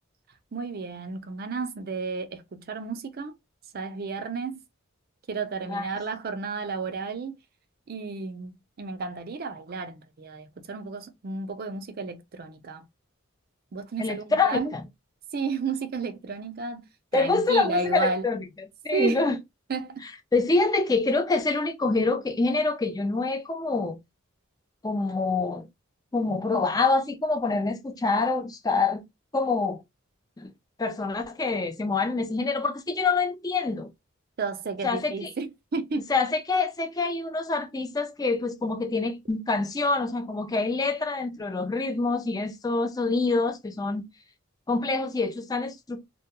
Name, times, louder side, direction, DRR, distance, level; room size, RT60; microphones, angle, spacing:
voice 1, 0.5-3.3 3.7-4.6 5.3-7.4 7.9-12.9 13.7-14.7 15.3-16.8 17.1-18.3 18.9-19.2 19.7-20.1 34.4-36.1, right 4 dB, 50° right, 0.4 m, -32 dB
voice 2, 14.0-14.8 17.1-18.4 18.8-19.4 20.3-24.0 24.8-25.7 26.1-29.0 29.3-29.8 30.4-30.5 30.8-33.9 34.8-35.3 36.1-44.1 44.7-46.1, left 3 dB, 20° left, 0.4 m, -26 dB
2.2 x 2.1 x 2.9 m
head